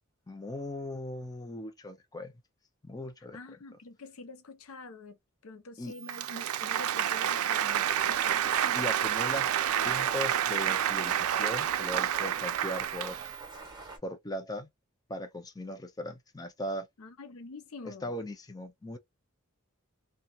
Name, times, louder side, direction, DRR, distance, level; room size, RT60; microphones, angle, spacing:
voice 1, 0.3-2.3 2.8-3.4 5.8-5.9 8.7-9.5 9.8-13.2 14.0-14.7 15.1-16.9 17.8-19.0, left 1 dB, 20° left, 0.5 m, -38 dB
voice 2, 3.3-5.2 5.4-8.8 17.0-18.1, left 3 dB, 80° left, 0.7 m, -46 dB
Applause, 6.0-13.4, right 10 dB, 90° right, 0.4 m, -29 dB
sound 1, 7.7-14.0, right 3 dB, 20° right, 1.4 m, -46 dB
2.8 x 2.2 x 2.3 m
head